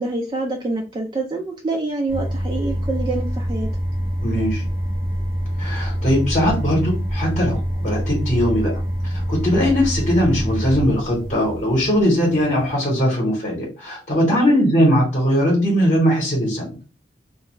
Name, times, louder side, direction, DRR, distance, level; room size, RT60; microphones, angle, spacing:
voice 1, 0.0-3.7 14.3-14.7, right 2 dB, 25° right, 0 dB, 0.3 m, -26 dB
sound 1, 2.1-12.7, equal, 55° right, 0.8 m, -25 dB
voice 2, 4.2-4.6 5.6-16.8, equal, 40° left, -3 dB, 0.9 m, -20 dB
2.4 x 2.2 x 2.8 m, 0.34 s
head